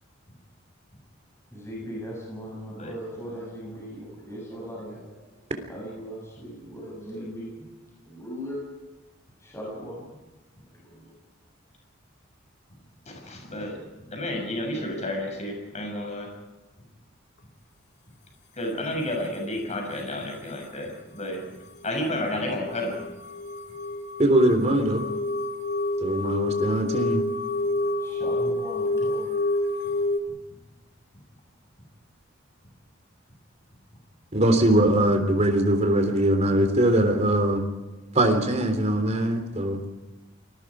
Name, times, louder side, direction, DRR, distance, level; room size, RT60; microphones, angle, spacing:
voice 1, 1.5-5.4 5.7-7.7 8.0-8.6 9.4-10.0 10.7-11.1 27.6-29.5, equal, 15° left, -3 dB, 7.6 m, -39 dB
voice 2, 13.1-13.8 14.1-16.3 18.5-21.4 21.8-22.9, left 1 dB, 35° left, 2 dB, 6.7 m, -31 dB
sound 1, 21.8-30.2, left 2 dB, 60° left, 2.3 m, -28 dB
voice 3, 24.2-25.0 26.0-27.2 34.3-37.7 38.1-39.8, right 1 dB, 35° right, 6 dB, 3.5 m, -21 dB
28.5 x 21.0 x 4.9 m, 1.1 s
head